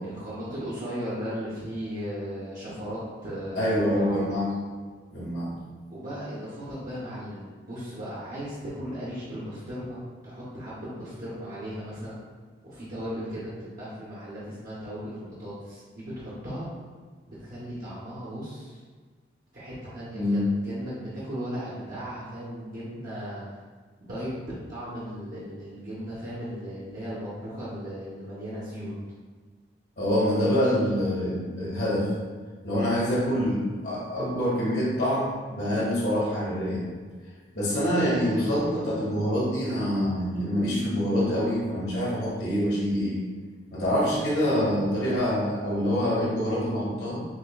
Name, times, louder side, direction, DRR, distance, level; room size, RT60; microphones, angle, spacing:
voice 1, 0.0-4.3 5.9-12.2 12.6-16.7 17.3-18.8 19.5-23.4 24.0-28.9, equal, 50° right, -9 dB, 0.8 m, -36 dB
voice 2, 3.5-4.5 5.1-5.5 20.1-20.4 30.0-32.1 32.6-36.8 37.5-43.2 43.7-47.2, equal, 65° left, -7 dB, 1.4 m, -26 dB
6.2 x 2.2 x 2.3 m, 1.5 s
head